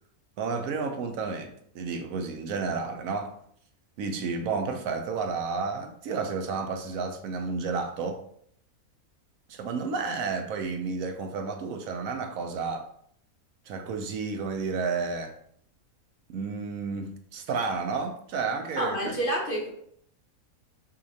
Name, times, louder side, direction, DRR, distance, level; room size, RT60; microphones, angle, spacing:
voice 1, 0.4-3.4 4.0-8.2 9.5-12.9 13.7-15.3 16.3-19.2, right 4 dB, 75° right, 6 dB, 1.0 m, -31 dB
voice 2, 18.8-19.7, right 1 dB, 45° left, -2 dB, 0.8 m, -28 dB
6.3 x 2.5 x 2.7 m, 0.65 s
omnidirectional pair, 1.5 m